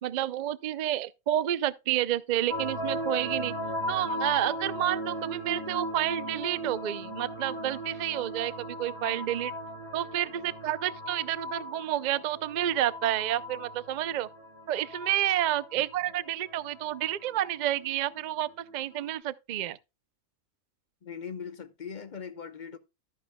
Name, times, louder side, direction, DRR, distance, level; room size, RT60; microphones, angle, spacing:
voice 1, 0.0-3.5 3.9-9.5 9.9-14.3 14.7-19.8, right 12 dB, 75° right, 0.4 m, -30 dB
sound 1, 2.5-19.1, equal, 20° left, 2.8 m, -38 dB
voice 2, 21.0-22.8, left 6 dB, 40° left, 0.8 m, -40 dB
13.5 x 8.9 x 2.2 m
omnidirectional pair, 1.5 m